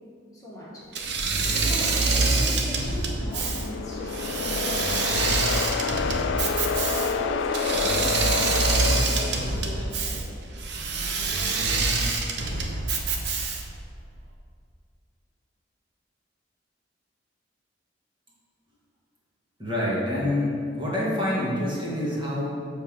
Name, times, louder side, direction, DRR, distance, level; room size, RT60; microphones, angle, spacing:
voice 1, 0.3-0.8 1.5-4.8 5.1-6.4 6.9-10.4, equal, 20° left, -8 dB, 1.3 m, -38 dB
Engine / Mechanisms, 0.9-13.8, right 3 dB, 65° right, 0.7 m, -26 dB
sound 1, 2.9-10.0, left 6 dB, 70° left, 0.3 m, -29 dB
voice 2, 19.6-22.7, left 1 dB, 25° right, -7 dB, 1.5 m, -27 dB
6.9 x 3.5 x 6.0 m, 2.3 s
head